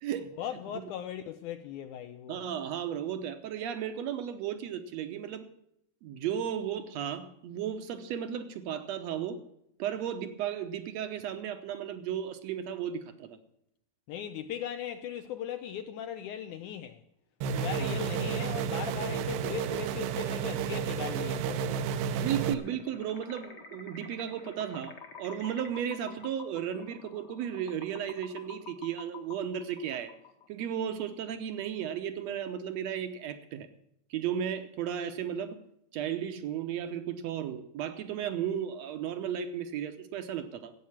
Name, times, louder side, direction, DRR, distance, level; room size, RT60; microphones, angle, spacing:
voice 1, 0.4-2.4 14.1-17.0 17.5-21.8, left 10 dB, 80° left, 1.9 m, -38 dB
voice 2, 2.3-5.4 6.0-9.4 9.8-13.4 17.8-18.0 22.1-30.1 30.5-33.7 34.1-35.6 35.9-40.7, right 9 dB, 70° right, 1.7 m, -34 dB
sound 1, 17.4-22.5, right 7 dB, 85° right, 2.6 m, -31 dB
sound 2, 22.2-30.7, left 5 dB, 50° left, 1.2 m, -49 dB
14.0 x 8.7 x 7.2 m
omnidirectional pair, 4.1 m